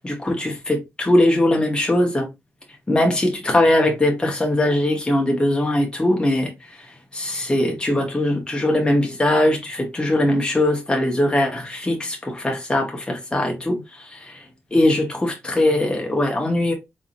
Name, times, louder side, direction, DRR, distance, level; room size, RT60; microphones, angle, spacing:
voice 1, 0.0-2.3 2.9-6.5 7.1-13.8 14.7-16.7, left 1 dB, 20° left, 1.1 m, -20 dB
4.2 x 3.5 x 2.5 m
wide cardioid pair, 105°, 5 cm